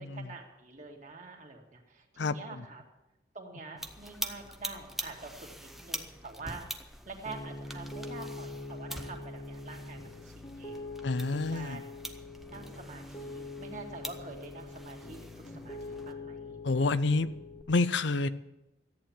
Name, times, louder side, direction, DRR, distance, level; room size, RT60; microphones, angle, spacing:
voice 1, 0.0-2.8 3.3-11.8 12.5-16.6, right 3 dB, 40° right, 2 dB, 2.2 m, -47 dB
voice 2, 2.2-2.6 11.0-11.8 16.6-17.3 17.7-18.3, left 3 dB, 65° left, 14 dB, 0.6 m, -28 dB
sound 1, 3.8-16.1, right 1 dB, ahead, 0.7 m, -44 dB
Piano, 7.3-17.6, left 2 dB, 25° left, 0.9 m, -43 dB
14.0 x 9.0 x 8.9 m, 0.95 s
head